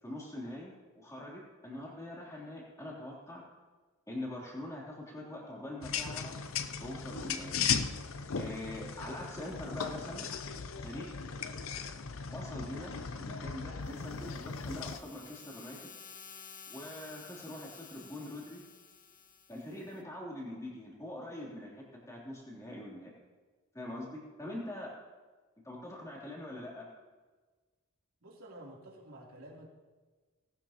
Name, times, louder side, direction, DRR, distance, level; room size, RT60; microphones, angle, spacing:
voice 1, 0.0-3.4 4.1-6.4 6.8-7.5 8.3-10.3 10.8-11.1 12.3-15.9 16.7-18.6 19.5-23.1 23.7-24.9 25.6-26.8, left 1 dB, 15° left, -4 dB, 3.2 m, -43 dB
sound 1, 5.8-15.0, left 6 dB, 70° left, 0.6 m, -37 dB
sound 2, 13.8-20.0, left 6 dB, 40° left, 0.9 m, -53 dB
voice 2, 28.2-29.7, right 1 dB, 85° right, -3 dB, 3.2 m, -50 dB
19.0 x 12.5 x 3.0 m, 1.4 s
head